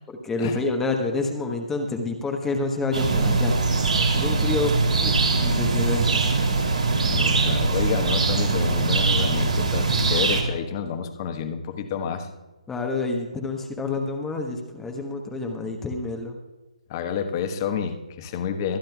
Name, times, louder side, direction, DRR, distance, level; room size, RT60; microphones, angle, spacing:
voice 1, 0.1-3.6 4.1-6.2 12.7-16.4, left 3 dB, 10° left, 3 dB, 1.1 m, -28 dB
sound 1, 2.9-10.4, right 3 dB, 80° right, 2.9 m, -22 dB
voice 2, 7.1-12.3 16.9-18.8, left 7 dB, 35° left, 7 dB, 1.3 m, -29 dB
24.0 x 10.0 x 2.3 m, 1.2 s
figure-of-eight pair, 145°, 4 cm